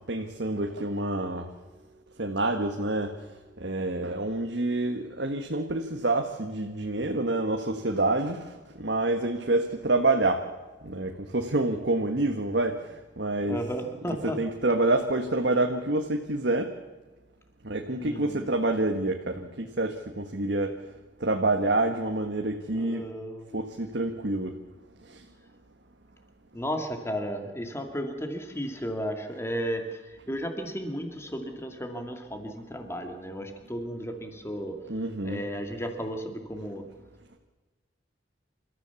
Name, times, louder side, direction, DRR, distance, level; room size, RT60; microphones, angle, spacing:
voice 1, 0.1-1.5 2.2-3.3 3.6-10.4 10.8-13.6 13.9-16.7 17.6-20.8 21.2-23.1 23.5-24.6 25.0-25.2 34.9-35.4, right 2 dB, 60° right, 3 dB, 1.5 m, -27 dB
voice 2, 13.5-14.4 18.0-18.5 22.7-23.6 26.5-34.8 35.2-36.9, equal, 15° left, 5 dB, 2.3 m, -34 dB
28.5 x 14.0 x 7.1 m, 1.2 s
head